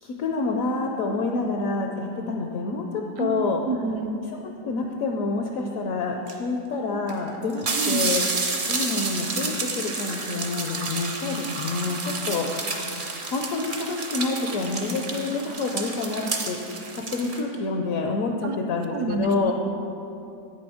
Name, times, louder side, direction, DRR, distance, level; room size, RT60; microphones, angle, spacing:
voice 1, 0.0-3.6 4.6-8.3 8.7-16.6 16.9-19.5, left 3 dB, 70° left, 2 dB, 0.9 m, -28 dB
voice 2, 3.2-4.2 7.7-8.1 18.4-18.6 18.9-19.5, right 4 dB, 70° right, 7 dB, 0.9 m, -29 dB
sound 1, 6.3-6.4 7.1-7.2 7.4-17.4, right 3 dB, 45° right, 0.7 m, -30 dB
8.4 x 6.1 x 4.9 m, 2.7 s
omnidirectional pair, 1.8 m